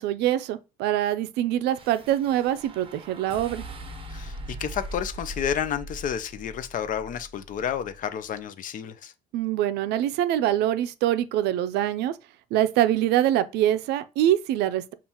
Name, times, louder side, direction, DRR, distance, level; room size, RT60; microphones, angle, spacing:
voice 1, 0.0-3.6 9.3-12.1 12.5-14.9, right 12 dB, 85° right, 0.4 m, -24 dB
sound 1, 1.7-8.1, right 1 dB, 30° right, 0.8 m, -41 dB
voice 2, 4.1-9.1, left 9 dB, 50° left, 0.5 m, -31 dB
7.1 x 2.4 x 2.8 m
cardioid pair, 110°, 17 cm